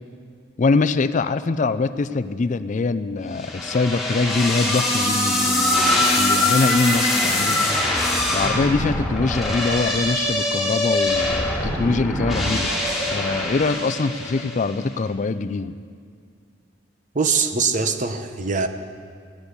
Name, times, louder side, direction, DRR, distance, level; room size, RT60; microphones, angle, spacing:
voice 1, 0.6-7.7 8.3-12.8 13.1-15.8, left 3 dB, 40° left, 12 dB, 0.4 m, -23 dB
sound 1, 3.4-14.7, left 1 dB, ahead, 3.1 m, -23 dB
voice 2, 17.1-18.7, right 5 dB, 40° right, 8 dB, 0.9 m, -22 dB
16.0 x 10.5 x 8.4 m, 2.1 s
head